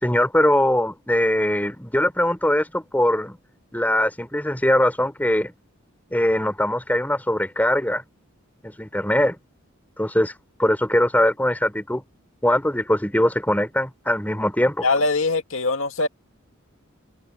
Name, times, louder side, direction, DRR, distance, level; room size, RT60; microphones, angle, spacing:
voice 1, 0.0-3.4 3.7-5.5 6.1-8.0 8.6-9.4 10.0-10.3 10.6-12.0 12.4-14.9, left 1 dB, 10° left, 3.5 m, -21 dB
voice 2, 14.8-16.1, left 3 dB, 80° left, 2.3 m, -22 dB
head